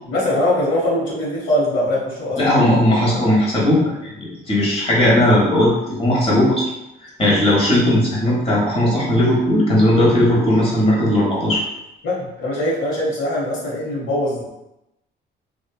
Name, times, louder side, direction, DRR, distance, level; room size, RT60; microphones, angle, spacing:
voice 1, 0.1-2.4 12.0-14.5, left 1 dB, 85° left, -7 dB, 1.1 m, -22 dB
voice 2, 2.4-6.7 7.2-11.6, left 1 dB, 30° left, -6 dB, 1.0 m, -17 dB
2.8 x 2.3 x 2.2 m, 0.92 s
cardioid pair, 90°, 20 cm